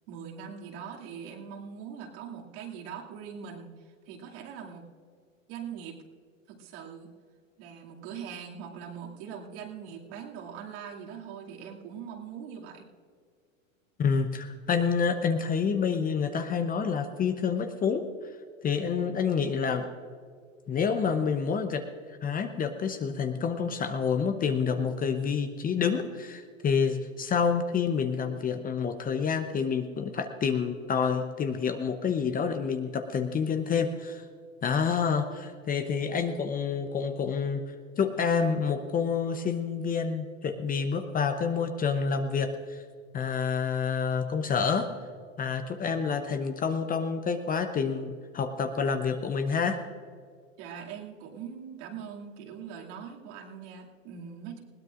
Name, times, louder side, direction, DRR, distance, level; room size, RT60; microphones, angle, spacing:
voice 1, 0.1-4.8 5.5-6.0 6.5-7.1 7.6-12.9 50.6-54.6, right 7 dB, 55° right, -1 dB, 2.6 m, -42 dB
voice 2, 14.0-18.3 18.6-19.9 20.7-21.8 22.1-34.2 34.6-42.8 43.1-44.9 45.4-49.8, left 6 dB, 20° left, 8 dB, 0.8 m, -28 dB
20.5 x 17.5 x 2.5 m, 2.1 s
hypercardioid pair, 105°, 39 cm